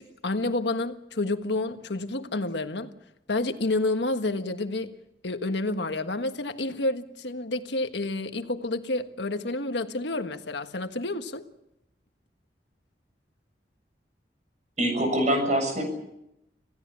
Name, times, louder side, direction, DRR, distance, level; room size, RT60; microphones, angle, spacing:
voice 1, 0.0-2.9 3.3-4.9 5.2-11.5, left 2 dB, 85° left, 1.5 m, -29 dB
voice 2, 14.8-15.8, right 1 dB, 45° right, 7.1 m, -24 dB
27.5 x 17.0 x 7.5 m
head